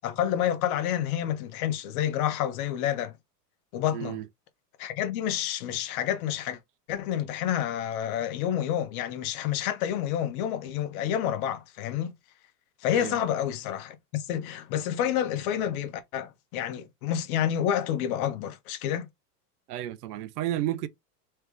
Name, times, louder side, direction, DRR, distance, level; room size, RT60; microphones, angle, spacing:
voice 1, 0.0-3.1 3.7-4.2 4.8-6.6 6.9-12.1 12.8-19.1, left 10 dB, 65° left, 1.2 m, -29 dB
voice 2, 3.9-4.2 12.9-13.2 19.7-20.9, right 13 dB, 70° right, 0.8 m, -32 dB
3.3 x 3.3 x 3.5 m
hypercardioid pair, 110°, 48 cm